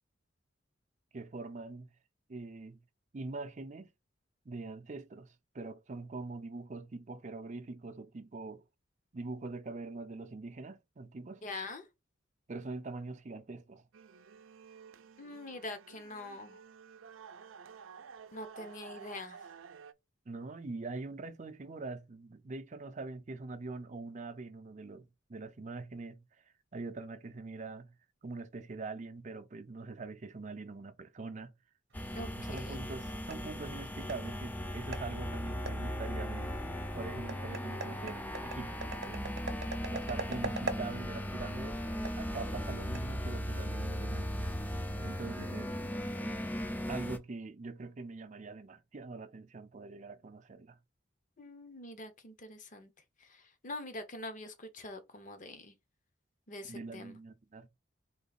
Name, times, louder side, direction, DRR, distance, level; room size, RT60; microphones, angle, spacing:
voice 1, 1.1-1.9 2.3-2.8 3.1-3.9 4.5-8.6 9.1-11.4 12.5-13.9 20.3-26.2 26.7-27.9 28.2-31.5 32.3-38.7 39.0-41.8 42.1-44.6 45.0-45.7 46.9-50.8 56.7-57.7, right 3 dB, 40° right, 0.5 m, -43 dB
voice 2, 11.4-11.8 15.2-16.6 18.3-19.4 32.1-32.8 51.4-52.9 53.3-55.8 56.5-57.2, left 2 dB, 40° left, 0.9 m, -44 dB
sound 1, 13.9-19.9, right 6 dB, 90° right, 0.5 m, -52 dB
sound 2, 31.9-47.2, equal, 10° left, 0.4 m, -38 dB
sound 3, 31.9-43.7, right 2 dB, 60° right, 0.8 m, -45 dB
3.9 x 3.2 x 4.1 m
head